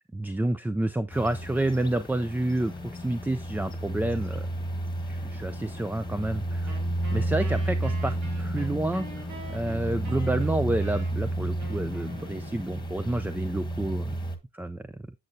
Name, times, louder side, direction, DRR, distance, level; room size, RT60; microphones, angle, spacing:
voice 1, 0.1-4.4 5.1-6.8 7.1-14.1 14.5-14.9, right 1 dB, 5° right, 0.3 m, -29 dB
sound 1, 1.1-14.4, right 1 dB, 15° left, 1.3 m, -32 dB
Wind instrument woodwind instrument, 6.7-13.0, right 4 dB, 80° right, 2.6 m, -46 dB
7.9 x 7.4 x 2.6 m
cardioid pair, 90°, 30 cm